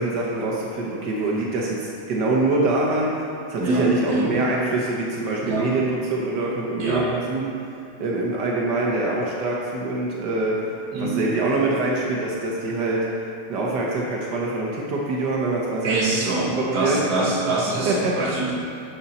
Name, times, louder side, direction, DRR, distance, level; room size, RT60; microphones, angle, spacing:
voice 1, 0.0-3.1 3.5-7.5 8.0-10.7 11.0-13.1 13.5-16.2 16.6-17.3 17.9-18.4, right 2 dB, 80° right, -3 dB, 0.9 m, -24 dB
voice 2, 3.6-4.4 5.4-5.7 6.8-7.1 10.9-11.2 15.8-18.5, right 2 dB, 45° right, -4 dB, 1.3 m, -24 dB
11.5 x 5.6 x 4.2 m, 2.5 s
omnidirectional pair, 3.4 m